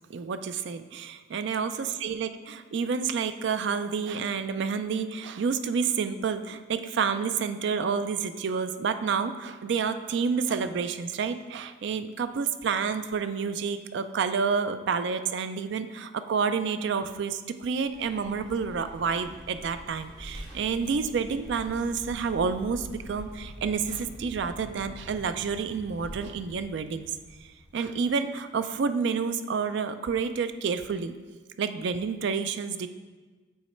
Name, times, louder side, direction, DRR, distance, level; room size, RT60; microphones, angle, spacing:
voice 1, 0.1-1.7 2.0-27.1 27.7-31.1 31.6-32.9, right 5 dB, 55° right, 10 dB, 0.3 m, -29 dB
Vehicle, 17.8-28.1, equal, 15° right, 1.2 m, -45 dB
7.9 x 3.2 x 4.3 m, 1.3 s
head